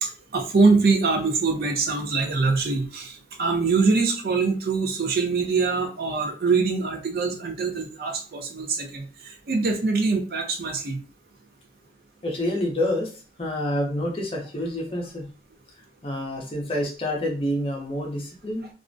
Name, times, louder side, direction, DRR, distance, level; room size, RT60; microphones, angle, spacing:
voice 1, 0.0-11.0, right 4 dB, 55° right, 3 dB, 0.4 m, -23 dB
voice 2, 12.2-13.1 13.4-15.3 16.0-18.7, left 1 dB, 30° left, -1 dB, 0.6 m, -27 dB
2.4 x 2.0 x 2.5 m, 0.38 s
head